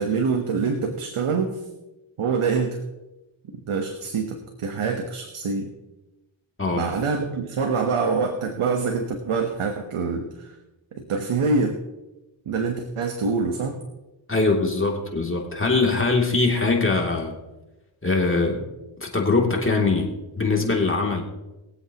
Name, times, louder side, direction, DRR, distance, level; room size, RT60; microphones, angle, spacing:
voice 1, 0.0-1.7 2.2-2.8 3.7-5.7 6.7-10.5 10.9-11.8 12.5-13.8, right 4 dB, 80° right, 4 dB, 1.3 m, -25 dB
voice 2, 14.3-17.3 18.0-18.6 19.0-20.1 20.4-21.2, left 3 dB, 25° left, -1 dB, 2.9 m, -22 dB
22.0 x 8.1 x 3.0 m, 1.0 s
cardioid pair, 60°, 49 cm